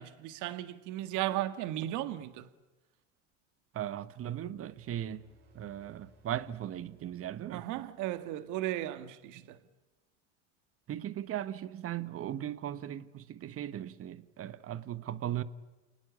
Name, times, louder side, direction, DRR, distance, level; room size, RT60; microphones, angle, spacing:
voice 1, 0.0-2.5 7.5-9.6, right 14 dB, 55° right, 1.9 m, -35 dB
voice 2, 3.7-5.2 5.5-7.7 10.9-15.4, right 11 dB, 40° right, 1.5 m, -38 dB
sound 1, 4.1-8.8, equal, 75° right, 6.6 m, -66 dB
29.5 x 20.0 x 8.5 m
hypercardioid pair, 90°, 35 cm